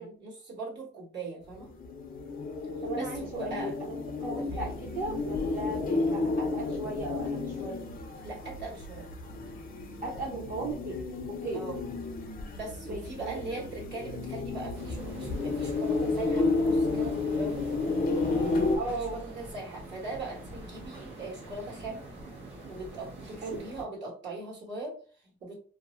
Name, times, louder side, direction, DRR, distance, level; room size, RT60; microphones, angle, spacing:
voice 1, 0.0-1.7 2.9-3.8 4.4-4.7 8.2-9.1 11.5-11.8 12.6-17.7 18.9-22.0 22.7-25.6, right 3 dB, 60° right, -2 dB, 1.4 m, -40 dB
sound 1, 1.5-18.8, left 3 dB, 45° left, 0.5 m, -32 dB
voice 2, 2.8-3.9 4.2-7.8 10.0-11.0 11.4-11.7 12.9-13.4 18.7-19.2 23.4-23.6, right 2 dB, 45° right, -4 dB, 0.8 m, -36 dB
sound 2, 14.7-23.8, right 1 dB, 80° right, 1.2 m, -44 dB
2.5 x 2.0 x 3.0 m, 0.42 s
cardioid pair, 90°, 20 cm